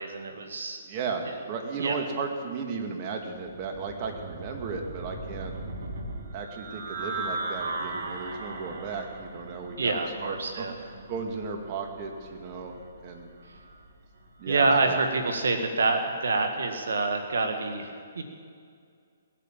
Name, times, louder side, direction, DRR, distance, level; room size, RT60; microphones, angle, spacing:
voice 1, 0.0-0.8 1.8-2.0 9.8-10.7 14.5-18.2, right 3 dB, 80° right, 6 dB, 1.7 m, -27 dB
voice 2, 0.8-5.5 6.3-9.9 10.2-13.3 14.4-14.9, right 5 dB, 35° right, 3 dB, 2.0 m, -35 dB
sound 1, 3.3-15.1, right 2 dB, 60° right, 2.3 m, -39 dB
19.0 x 9.2 x 7.4 m, 2.2 s
hypercardioid pair, 145°, 0 cm